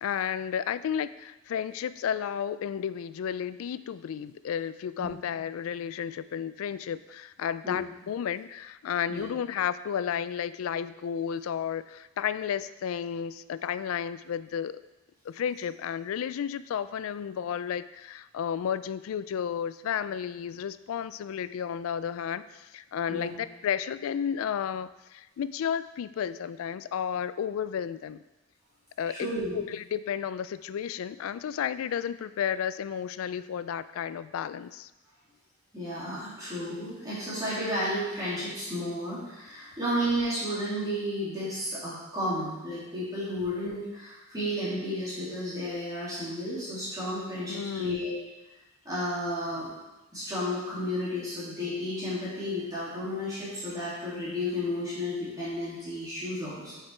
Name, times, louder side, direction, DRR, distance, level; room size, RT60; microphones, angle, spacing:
voice 1, 0.0-14.8 15.3-28.2 29.0-34.9 47.5-48.1, left 8 dB, 75° left, 15 dB, 0.3 m, -32 dB
voice 2, 29.1-29.6 35.7-48.2 48.8-49.7 50.1-56.8, equal, 20° right, -10 dB, 2.5 m, -32 dB
7.4 x 4.9 x 4.5 m, 1.0 s
head